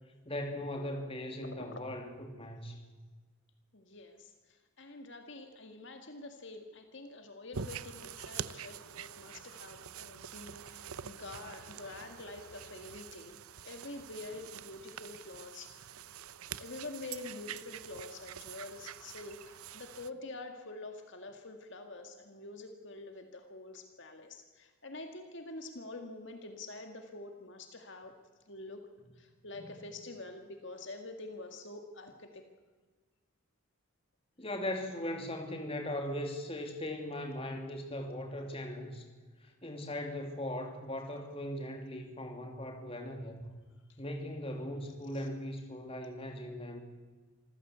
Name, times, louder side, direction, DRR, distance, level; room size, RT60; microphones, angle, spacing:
voice 1, 0.3-2.8 29.6-29.7 34.4-39.0 39.4-43.5 44.0-46.8, left 1 dB, 25° left, 4 dB, 2.7 m, -39 dB
voice 2, 3.7-13.4 13.6-15.7 16.1-16.2 16.6-28.1 28.5-28.8 29.2-32.4 45.1-45.2, left 2 dB, 55° left, 5 dB, 2.1 m, -46 dB
sound 1, 7.5-20.1, right 8 dB, 80° right, 0.7 m, -46 dB
26.0 x 15.5 x 8.2 m, 1.4 s
head